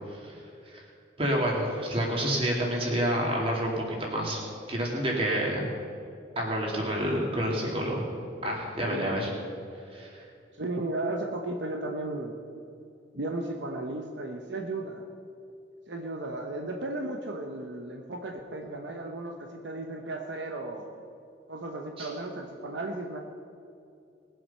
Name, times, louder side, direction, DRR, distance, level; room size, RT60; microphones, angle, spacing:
voice 1, 1.2-4.4 4.7-5.7 6.4-8.0 8.4-9.3 9.9-10.2 22.0-22.1, equal, 30° right, -1 dB, 2.6 m, -28 dB
voice 2, 10.6-12.4 13.1-15.1 15.9-21.0 21.5-23.2, right 2 dB, 70° right, 2 dB, 0.9 m, -35 dB
20.0 x 7.9 x 5.5 m, 2.5 s
head